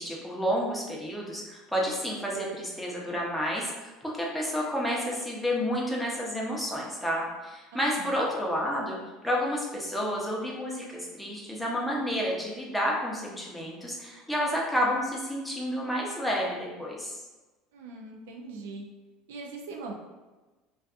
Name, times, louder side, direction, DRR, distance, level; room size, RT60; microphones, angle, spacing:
voice 1, 0.0-9.0 9.2-17.1, equal, 5° left, -3 dB, 0.6 m, -30 dB
voice 2, 7.7-8.2 17.7-18.8 19.3-19.9, right 3 dB, 90° right, 1 dB, 0.4 m, -41 dB
2.5 x 2.3 x 2.4 m, 1.2 s
supercardioid pair, 110°, 0 cm